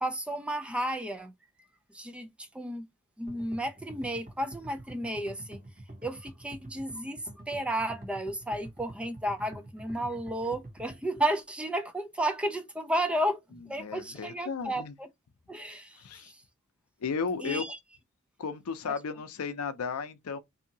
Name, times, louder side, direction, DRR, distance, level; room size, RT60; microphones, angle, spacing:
voice 1, 0.0-1.3 1.9-2.9 3.2-5.6 6.0-13.4 13.7-15.1 15.5-16.3 17.4-17.8, right 1 dB, 5° right, 0.3 m, -33 dB
sound 1, 3.3-11.2, right 1 dB, 40° right, 1.2 m, -46 dB
voice 2, 13.8-14.9 16.0-16.3 17.0-17.6 18.4-20.4, left 5 dB, 80° left, 0.5 m, -34 dB
2.7 x 2.7 x 2.6 m
head